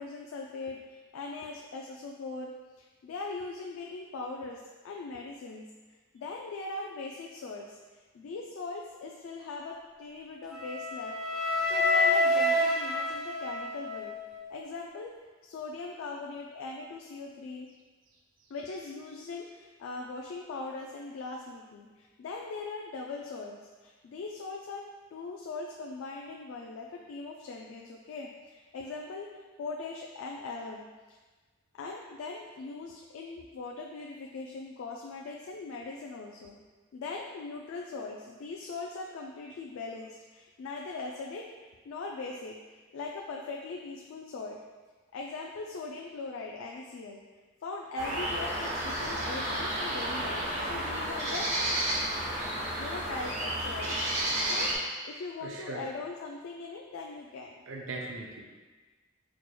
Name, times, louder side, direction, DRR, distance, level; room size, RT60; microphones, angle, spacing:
voice 1, 0.0-2.5 2.8-5.7 6.1-11.1 11.6-14.2 14.5-15.1 15.4-17.7 18.5-24.8 25.1-31.2 31.7-36.6 36.9-41.5 41.8-42.6 42.9-44.6 45.1-47.2 47.6-51.5 52.5-54.1 54.4-54.7 55.0-57.5, left 3 dB, 85° left, -1 dB, 0.3 m, -40 dB
Wind instrument woodwind instrument, 10.5-14.5, left 1 dB, ahead, 0.6 m, -28 dB
sound 1, 48.0-54.8, right 1 dB, 35° right, 0.9 m, -31 dB
voice 2, 55.4-55.9 57.7-58.4, right 2 dB, 70° right, 0 dB, 0.5 m, -39 dB
4.6 x 3.0 x 2.2 m, 1.3 s
head